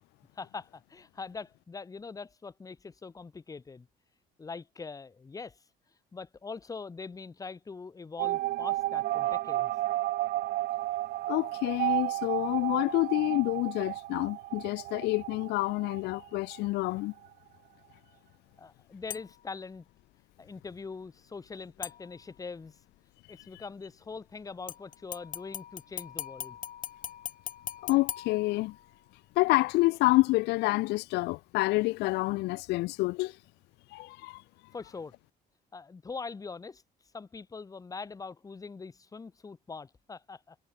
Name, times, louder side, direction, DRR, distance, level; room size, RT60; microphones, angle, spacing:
voice 1, 0.3-3.9 4.4-5.6 6.1-9.7 18.6-19.9 20.4-22.7 23.3-26.6 34.7-35.1 35.7-36.8 37.1-40.6, left 4 dB, 20° left, 1.0 m, -42 dB
sound 1, 8.2-16.7 17.0-17.1 17.2-17.3, right 16 dB, 65° right, 0.4 m, -32 dB
voice 2, 11.3-17.1 27.8-28.7 29.4-33.3 33.9-34.4, left 21 dB, 80° left, 0.4 m, -28 dB
sound 2, 19.1-19.5 21.8-22.5 24.7-29.1 29.5-29.6, left 10 dB, 50° left, 2.0 m, -41 dB
cardioid pair, 110°, 17 cm